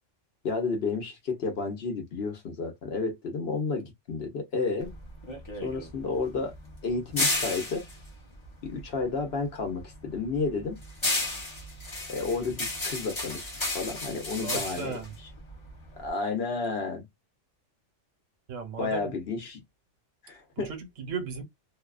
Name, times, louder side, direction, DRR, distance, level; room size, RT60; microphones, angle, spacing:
voice 1, 0.4-4.9 5.6-6.5 6.8-7.8 8.6-10.8 12.1-14.9 16.0-17.1 18.8-19.6 20.2-20.7, left 4 dB, 60° left, 1.0 m, -31 dB
sound 1, 4.8-9.3 9.6-16.1, left 2 dB, 25° left, 0.8 m, -33 dB
voice 2, 14.4-15.2 18.5-19.2 20.6-21.4, right 5 dB, 80° right, 1.2 m, -36 dB
2.7 x 2.3 x 2.3 m
omnidirectional pair, 1.3 m